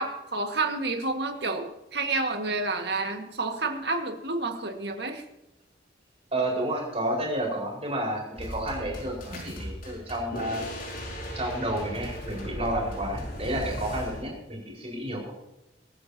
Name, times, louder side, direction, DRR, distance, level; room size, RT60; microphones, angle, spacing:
voice 1, 0.0-5.2 9.3-9.4, right 3 dB, 65° right, 4 dB, 1.9 m, -30 dB
voice 2, 6.3-10.7 11.3-15.3, right 1 dB, 35° right, -1 dB, 5.1 m, -31 dB
sound 1, 8.4-14.2, equal, 50° left, 5.6 m, -37 dB
23.0 x 12.5 x 2.9 m, 0.91 s
head